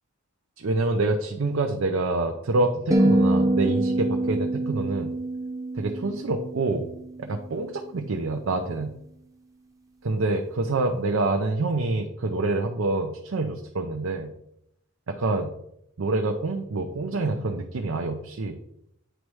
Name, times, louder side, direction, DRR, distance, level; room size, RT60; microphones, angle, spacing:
voice 1, 0.6-5.1 5.8-6.9 7.2-8.9 10.0-14.3 15.1-15.5 16.0-18.6, right 2 dB, 70° right, 4 dB, 0.6 m, -26 dB
sound 1, 2.9-7.2, right 1 dB, 15° right, 0.8 m, -25 dB
8.9 x 3.1 x 4.7 m, 0.77 s
head